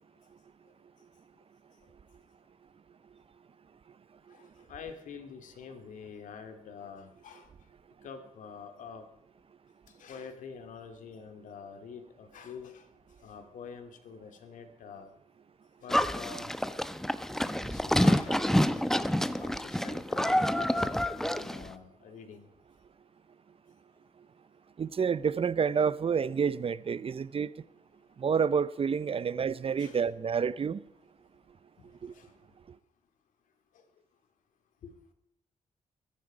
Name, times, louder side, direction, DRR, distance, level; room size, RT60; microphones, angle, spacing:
voice 1, 4.3-7.5 8.0-9.1 10.0-12.9 13.2-15.1 15.8-16.5 17.7-18.4 19.4-22.5 29.8-30.0 32.1-32.3 33.7-33.8 34.8-34.9, left 6 dB, 85° left, 2.3 m, -46 dB
Livestock farm animals working animals, 15.9-21.7, left 1 dB, 5° left, 0.9 m, -28 dB
voice 2, 24.8-27.6 28.2-30.8 32.0-32.1, right 6 dB, 45° right, 0.6 m, -29 dB
23.0 x 10.0 x 4.9 m
cardioid pair, 70°, 13 cm